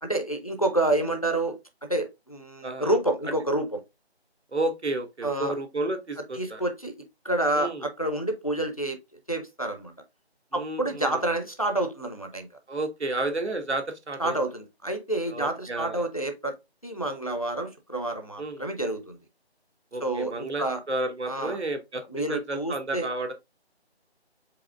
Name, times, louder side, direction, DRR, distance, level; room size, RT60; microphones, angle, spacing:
voice 1, 0.0-3.8 5.2-5.5 6.3-6.9 7.2-9.0 9.3-9.9 10.5-12.5 14.2-16.6 16.8-19.2 20.0-20.8 21.3-21.6 22.1-23.3, right 1 dB, 35° left, 0.5 m, -28 dB
voice 2, 2.6-3.0 4.5-6.6 7.5-7.9 10.5-11.2 12.7-14.4 15.3-16.1 18.4-18.6 19.9-22.0 22.3-23.3, right 2 dB, 85° right, 1.3 m, -31 dB
4.8 x 3.5 x 2.3 m
figure-of-eight pair, 170°, 33 cm